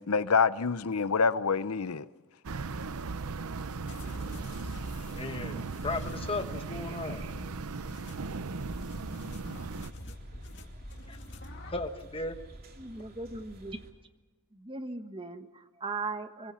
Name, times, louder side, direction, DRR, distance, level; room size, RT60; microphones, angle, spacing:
voice 1, 0.0-2.1, left 5 dB, 80° left, 0.8 m, -26 dB
sound 1, 2.4-9.9, right 4 dB, 80° right, 0.8 m, -37 dB
sound 2, 3.9-11.9, left 1 dB, 50° left, 2.5 m, -46 dB
voice 2, 5.1-7.2 11.1-11.2 11.6-12.3, left 2 dB, 25° left, 1.5 m, -36 dB
sound 3, 8.6-13.9, equal, 40° right, 2.7 m, -51 dB
voice 3, 12.8-13.8 14.5-16.5, right 3 dB, 25° right, 1.3 m, -38 dB
24.5 x 23.5 x 5.7 m
head